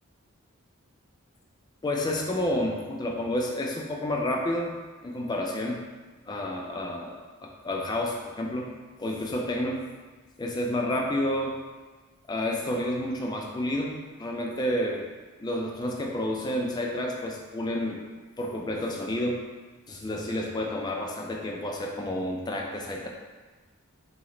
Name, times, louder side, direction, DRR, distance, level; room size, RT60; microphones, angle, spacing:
voice 1, 1.8-4.7 5.0-5.8 6.3-8.7 9.0-9.8 10.4-11.6 12.3-15.0 15.4-18.0 18.4-19.4 19.9-23.1, left 1 dB, 20° left, 0 dB, 0.3 m, -30 dB
3.0 x 2.1 x 3.7 m, 1.3 s
head